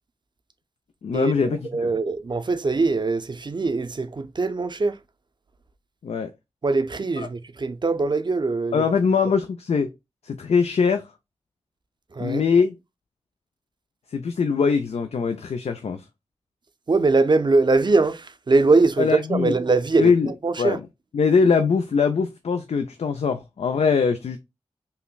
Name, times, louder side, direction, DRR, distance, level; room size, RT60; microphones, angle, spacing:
voice 1, 1.0-1.9 6.0-6.3 7.2-7.3 8.7-9.9 10.2-11.1 12.2-12.7 14.1-16.0 19.0-19.5 20.0-20.3 20.6-20.9 21.1-24.4, left 5 dB, 80° left, 0.4 m, -22 dB
voice 2, 1.7-5.0 6.6-8.8 12.1-12.4 16.9-20.1 20.4-20.8, right 3 dB, 45° right, 0.5 m, -22 dB
5.6 x 2.1 x 2.2 m
wide cardioid pair, 50°, 11 cm